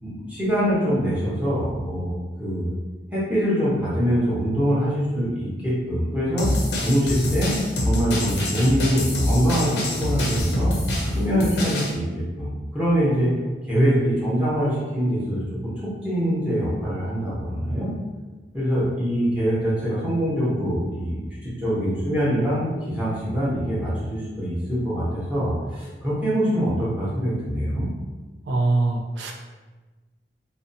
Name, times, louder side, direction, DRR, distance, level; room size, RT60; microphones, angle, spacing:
voice 1, 0.0-2.7 3.1-6.5 6.8-7.5 7.8-10.8 11.1-13.3 13.7-17.9 18.5-27.9, equal, 10° right, -10 dB, 0.7 m, -24 dB
sound 1, 6.4-11.9, left 1 dB, 75° left, 0.5 m, -25 dB
voice 2, 28.5-29.3, right 2 dB, 85° right, 0 dB, 0.4 m, -23 dB
2.6 x 2.2 x 2.5 m, 1.3 s
head